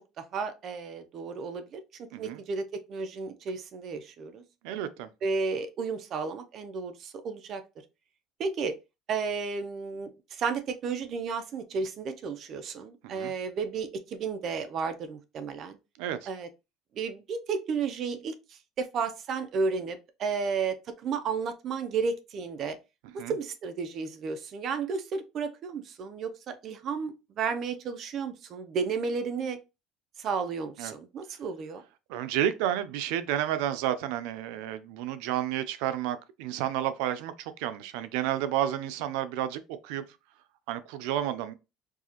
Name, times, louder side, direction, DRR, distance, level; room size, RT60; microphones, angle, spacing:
voice 1, 0.2-4.4 5.2-7.6 8.4-8.7 9.1-15.8 16.3-16.5 16.9-22.8 23.3-29.6 30.2-31.8, right 5 dB, 45° right, 0.6 m, -33 dB
voice 2, 4.6-5.1 13.0-13.3 16.0-16.3 23.2-23.3 30.8-30.9 32.1-40.0 40.7-41.5, right 11 dB, 85° right, 0.5 m, -31 dB
4.6 x 2.4 x 2.8 m
cardioid pair, 140°, 0 cm